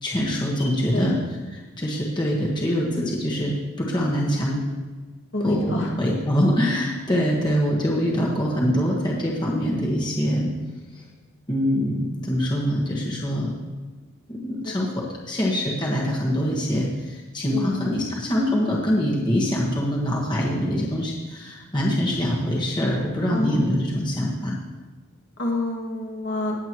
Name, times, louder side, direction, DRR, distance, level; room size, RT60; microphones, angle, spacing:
voice 1, 0.0-1.2 1.5-4.6 5.4-10.5 11.5-13.5 14.3-24.6, equal, 20° left, -3 dB, 1.5 m, -24 dB
voice 2, 5.3-6.0 14.6-14.8 17.5-17.9 23.3-23.7 25.4-26.6, left 1 dB, 60° left, -1 dB, 2.0 m, -28 dB
18.5 x 7.9 x 3.1 m, 1.3 s
head